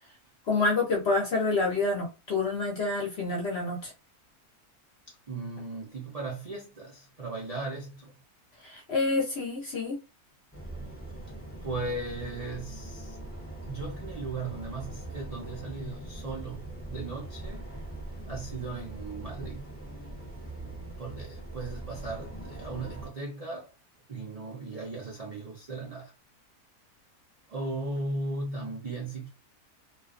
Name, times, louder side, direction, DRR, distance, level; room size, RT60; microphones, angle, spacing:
voice 1, 0.5-3.9 8.6-10.0, left 3 dB, 55° left, 0.7 m, -28 dB
voice 2, 5.1-8.1 11.3-13.2 13.7-17.7 18.3-19.7 21.0-23.7 24.1-26.1 27.5-29.3, right 2 dB, 85° right, 0.3 m, -37 dB
sound 1, 10.5-23.1, right 2 dB, 20° left, 0.3 m, -41 dB
2.4 x 2.3 x 2.4 m
omnidirectional pair, 1.6 m